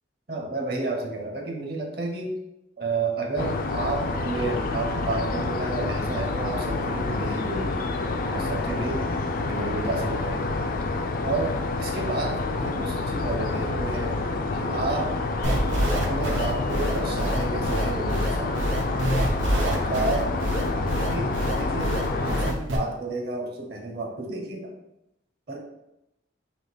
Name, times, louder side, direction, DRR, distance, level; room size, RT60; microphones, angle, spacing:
voice 1, 0.3-2.4 2.8-7.9 8.3-9.0 9.4-10.6 11.2-14.2 14.5-15.1 15.9-18.6 19.5-20.3 21.0-24.7 25.5-25.6, right 2 dB, 55° right, 1 dB, 0.7 m, -31 dB
sound 1, 3.4-22.5, left 3 dB, 45° left, 0.3 m, -28 dB
sound 2, 15.4-22.8, right 1 dB, 90° right, 0.7 m, -26 dB
3.6 x 2.8 x 3.9 m, 0.88 s
head